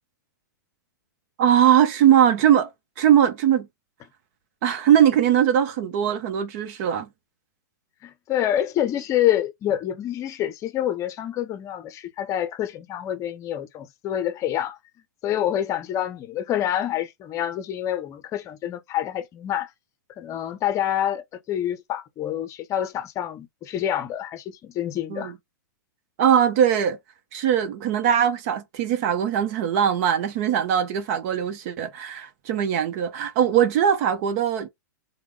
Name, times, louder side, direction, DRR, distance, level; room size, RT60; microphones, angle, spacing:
voice 1, 1.4-2.7 3.0-3.7 4.6-7.1 25.1-25.3 26.2-27.0 27.3-34.7, right 9 dB, 50° right, 0.9 m, -20 dB
voice 2, 8.0-14.8 15.2-19.7 20.2-25.3, left 11 dB, 30° left, 0.7 m, -27 dB
3.5 x 2.3 x 3.3 m
hypercardioid pair, 120°, 11 cm